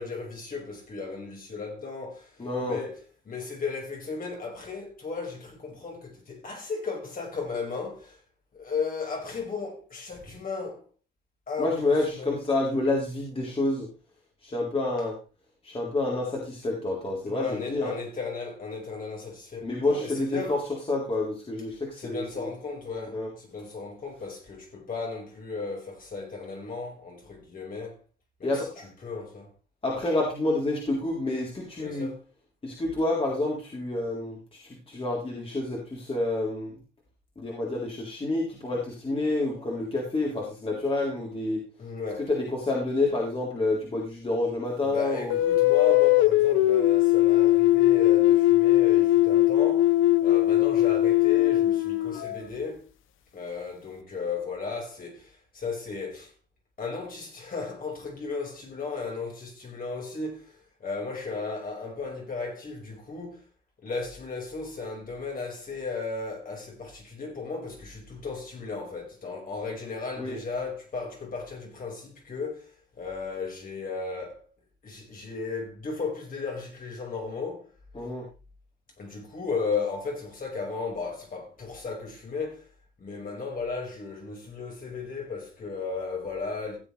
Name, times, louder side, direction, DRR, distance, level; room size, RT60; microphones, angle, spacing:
voice 1, 0.0-8.2 8.5-10.8 11.5-12.4 17.2-20.6 22.0-28.0 28.4-28.5 29.0-29.5 31.8-32.2 41.8-42.3 44.8-52.9 53.3-56.3 56.8-63.4 63.8-74.4 74.8-77.7 79.0-82.7 83.0-86.8, left 4 dB, 45° left, 5.5 m, -35 dB
voice 2, 2.4-2.8 11.6-13.9 14.4-15.2 15.6-17.9 19.6-20.6 20.9-22.5 23.1-23.3 28.4-28.9 29.8-32.1 32.6-36.8 37.4-41.6 42.3-45.4 70.2-70.4 77.9-78.2, left 2 dB, 30° left, 3.9 m, -28 dB
sound 1, 45.3-52.6, left 16 dB, 85° left, 0.7 m, -20 dB
16.0 x 8.0 x 3.4 m
cardioid pair, 90°, 20 cm